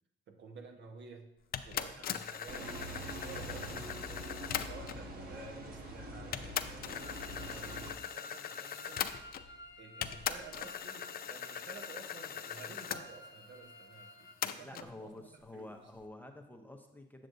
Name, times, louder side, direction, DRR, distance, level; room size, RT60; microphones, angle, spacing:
voice 1, 0.3-1.3 1.6-9.1 9.8-15.1 15.5-15.8, right 4 dB, 65° right, 3 dB, 1.0 m, -52 dB
sound 1, 1.5-5.1 5.8-5.9 6.3-9.6 10.0-13.0 14.4-14.9, left 9 dB, 50° left, 0.4 m, -40 dB
sound 2, 2.5-7.9, right 1 dB, 50° right, 1.2 m, -44 dB
sound 3, 7.0-14.3, left 1 dB, 70° left, 0.8 m, -53 dB
voice 2, 14.6-17.3, left 1 dB, 10° left, 3 dB, 0.6 m, -49 dB
7.8 x 6.5 x 2.6 m, 0.85 s
cardioid pair, 90°, 20 cm